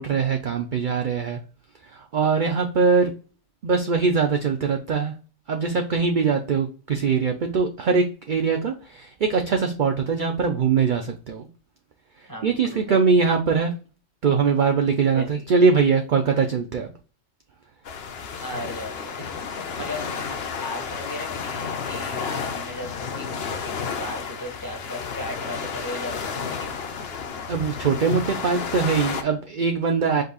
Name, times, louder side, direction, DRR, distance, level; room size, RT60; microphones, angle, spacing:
voice 1, 0.0-1.4 1.9-3.1 3.6-5.1 5.5-11.5 12.4-13.7 14.2-16.9 27.5-30.2, right 5 dB, 50° right, 4 dB, 0.6 m, -22 dB
voice 2, 12.3-13.0 15.1-15.5 18.4-26.8, left 1 dB, 15° left, 1 dB, 1.5 m, -37 dB
sound 1, 17.9-29.2, left 6 dB, 55° left, 0.9 m, -32 dB
5.2 x 4.0 x 2.3 m, 0.35 s
omnidirectional pair, 1.3 m